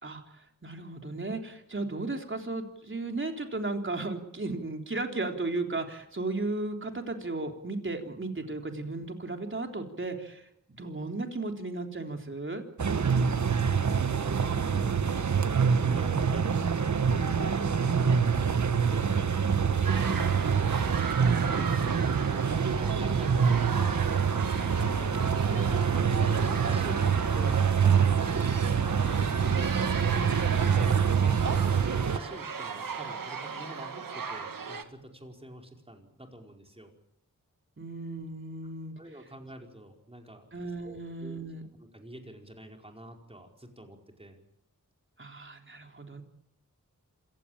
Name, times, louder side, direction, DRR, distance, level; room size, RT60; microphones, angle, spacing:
voice 1, 0.0-12.6 19.8-20.7 29.5-30.6 37.8-39.0 40.5-41.6 45.2-46.2, right 3 dB, 35° right, 4 dB, 3.6 m, -35 dB
sound 1, 12.8-32.2, right 6 dB, 60° right, 1.2 m, -26 dB
voice 2, 13.3-19.2 21.0-27.0 27.3-29.0 30.7-36.9 39.0-40.5 40.8-41.5 41.8-44.4, right 1 dB, 15° right, 2 dB, 4.9 m, -47 dB
sound 2, 19.8-34.8, right 5 dB, 85° right, 1.9 m, -38 dB
27.0 x 16.5 x 8.9 m, 0.75 s
wide cardioid pair, 95°, 33 cm